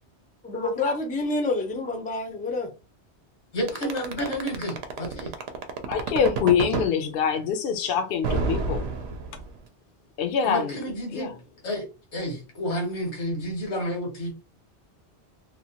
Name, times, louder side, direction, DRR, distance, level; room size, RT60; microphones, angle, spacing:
voice 1, 0.4-2.7, left 2 dB, 15° left, 0.3 m, -28 dB
voice 2, 3.5-5.3 10.4-11.3 11.6-11.8 12.1-14.3, equal, 85° left, 1.5 m, -30 dB
sound 1, 3.7-6.9 8.2-9.6, right 4 dB, 70° right, 0.8 m, -28 dB
voice 3, 5.9-8.9 10.2-10.8 11.1-11.4, left 7 dB, 65° left, 0.7 m, -25 dB
2.9 x 2.1 x 2.8 m
omnidirectional pair, 1.1 m